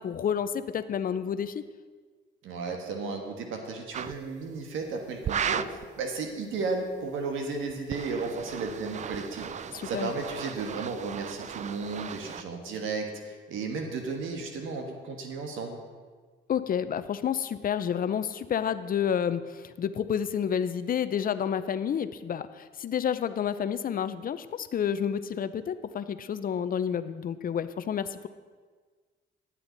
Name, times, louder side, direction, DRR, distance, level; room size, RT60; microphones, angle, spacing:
voice 1, 0.0-1.6 9.7-10.1 16.5-28.3, left 8 dB, 45° left, 12 dB, 0.6 m, -30 dB
voice 2, 2.4-9.5 9.8-15.8, right 4 dB, 85° right, 3 dB, 1.4 m, -34 dB
sound 1, 3.9-4.2 5.2-5.9 7.7-12.4, right 8 dB, 35° right, 0.4 m, -35 dB
11.5 x 9.0 x 4.0 m, 1.5 s
cardioid pair, 90°, 20 cm